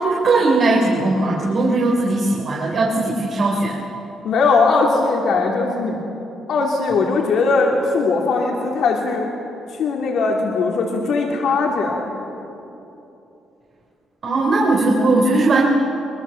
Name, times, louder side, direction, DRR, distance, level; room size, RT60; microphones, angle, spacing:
voice 1, 0.0-3.8 14.2-15.6, right 2 dB, 55° right, -2 dB, 3.5 m, -18 dB
voice 2, 4.2-6.0 6.5-9.3 9.7-12.1, left 4 dB, 70° left, -1 dB, 2.9 m, -19 dB
23.5 x 22.0 x 7.2 m, 2.9 s
cardioid pair, 90°, 0 cm